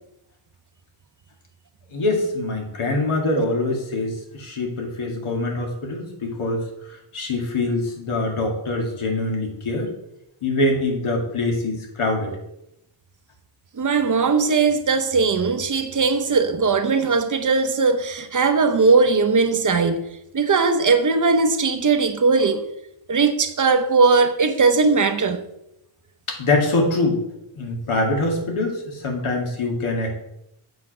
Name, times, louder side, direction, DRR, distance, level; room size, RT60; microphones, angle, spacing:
voice 1, 1.9-9.9 10.4-12.4 26.3-27.2 27.5-30.1, left 2 dB, 85° left, 2.3 m, -24 dB
voice 2, 13.8-20.0 20.3-22.6 23.1-25.4, right 4 dB, 40° right, 0.8 m, -19 dB
7.9 x 4.9 x 6.0 m
wide cardioid pair, 150°, 49 cm